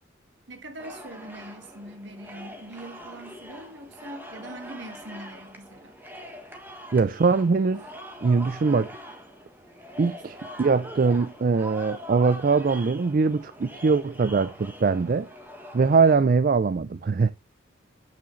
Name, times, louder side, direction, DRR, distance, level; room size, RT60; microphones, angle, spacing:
voice 1, 0.5-6.0, right 1 dB, 65° right, 1.8 m, -42 dB
sound 1, 0.8-16.1, equal, 10° right, 1.4 m, -43 dB
voice 2, 6.9-7.9 8.2-8.9 10.0-15.3 15.7-17.3, right 4 dB, 45° right, 0.4 m, -22 dB
8.8 x 5.9 x 3.1 m
head